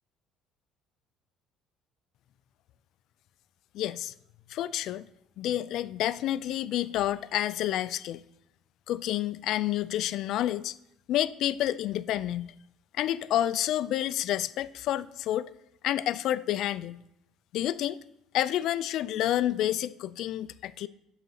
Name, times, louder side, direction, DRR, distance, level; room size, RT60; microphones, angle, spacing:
voice 1, 3.7-4.1 4.5-5.0 5.4-8.2 8.9-10.7 11.1-12.5 12.9-15.5 15.8-17.0 17.5-18.0 18.3-20.9, left 12 dB, 55° left, 0.3 m, -29 dB
11.5 x 4.0 x 6.4 m
cardioid pair, 160°, 0 cm